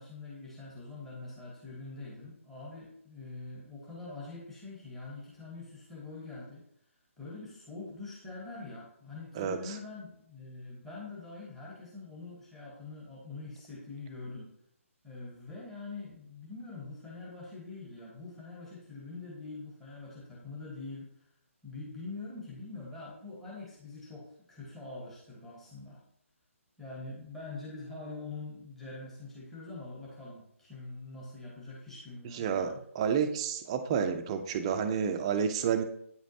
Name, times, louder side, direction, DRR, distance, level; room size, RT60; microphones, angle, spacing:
voice 1, 0.0-6.6 7.2-14.5 15.0-21.3 21.6-26.0 26.8-32.8, left 3 dB, 5° left, -4 dB, 1.3 m, -44 dB
voice 2, 32.3-35.8, right 7 dB, 25° right, 7 dB, 0.5 m, -30 dB
8.7 x 5.0 x 2.7 m, 0.70 s
figure-of-eight pair, 140°, 8 cm